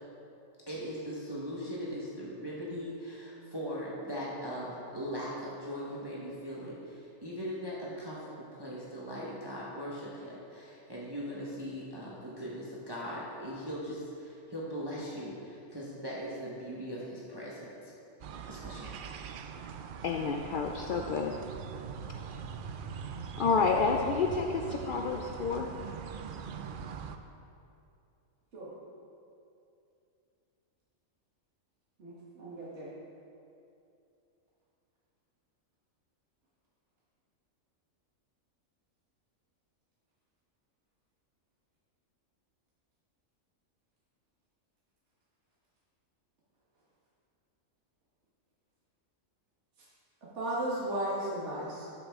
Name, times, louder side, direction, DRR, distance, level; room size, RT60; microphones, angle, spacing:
voice 1, 0.7-17.9 18.4-18.9, equal, 20° right, -6 dB, 1.2 m, -40 dB
sound 1, 18.2-27.2, right 6 dB, 80° right, 0.4 m, -42 dB
voice 2, 20.0-21.4 23.4-25.7, left 4 dB, 80° left, 3 dB, 0.4 m, -29 dB
voice 3, 32.0-32.9 50.3-51.9, right 1 dB, 55° right, -8 dB, 1.9 m, -35 dB
12.0 x 7.0 x 3.6 m, 2.6 s
omnidirectional pair, 1.4 m